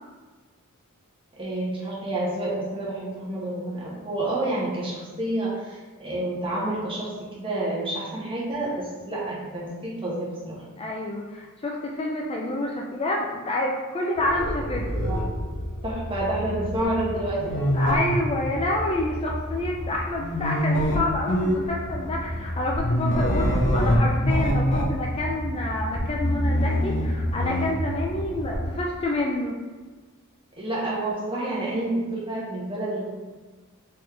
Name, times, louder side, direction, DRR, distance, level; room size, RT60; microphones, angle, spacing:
voice 1, 1.3-10.6 15.0-15.2 15.8-17.6 30.6-33.0, right 1 dB, 25° right, -6 dB, 1.4 m, -29 dB
voice 2, 10.8-15.0 17.7-29.6, left 1 dB, 25° left, -1 dB, 0.4 m, -28 dB
sound 1, 14.2-28.7, equal, 55° left, 0.7 m, -26 dB
4.2 x 3.7 x 3.2 m, 1.4 s
head